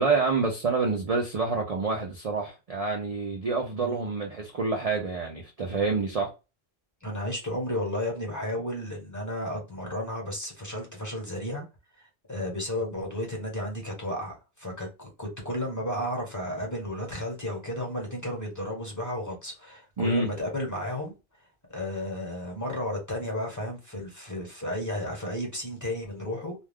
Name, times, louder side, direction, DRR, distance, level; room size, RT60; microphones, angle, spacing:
voice 1, 0.0-6.3 20.0-20.3, right 4 dB, 50° right, 0.4 m, -27 dB
voice 2, 3.8-4.1 7.0-11.7 12.0-21.1 21.7-26.5, left 1 dB, 15° left, 0.9 m, -33 dB
2.4 x 2.3 x 3.4 m
omnidirectional pair, 1.3 m